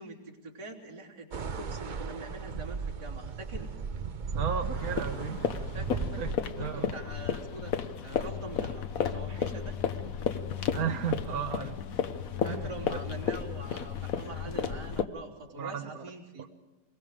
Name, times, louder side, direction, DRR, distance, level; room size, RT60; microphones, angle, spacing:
voice 1, 0.0-3.7 5.7-9.8 12.4-16.5, right 2 dB, 85° right, -4 dB, 4.0 m, -44 dB
sound 1, 1.3-6.4, right 5 dB, 45° right, 0.6 m, -36 dB
voice 2, 4.3-5.5 6.2-6.3 6.6-6.9 10.7-11.8 12.5-12.7 15.5-16.0 16.4-16.5, right 8 dB, 65° right, 6 dB, 1.3 m, -34 dB
sound 2, 4.8-15.0, left 7 dB, 60° left, 1.3 m, -33 dB
27.0 x 22.0 x 4.9 m, 1.1 s
omnidirectional pair, 1.7 m